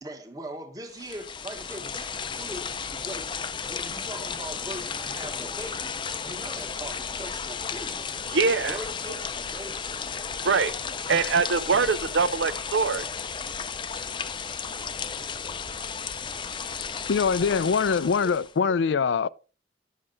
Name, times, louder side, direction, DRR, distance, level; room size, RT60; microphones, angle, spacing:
voice 1, 0.0-8.1 8.7-9.7, right 1 dB, 20° right, 1.3 m, -41 dB
sound 1, 0.9-18.5, left 6 dB, 25° left, 0.5 m, -34 dB
voice 2, 8.3-8.8 10.4-10.7 11.1-13.0, right 5 dB, 80° right, 0.6 m, -23 dB
voice 3, 17.1-19.3, left 5 dB, 80° left, 0.4 m, -23 dB
10.0 x 6.6 x 3.9 m
head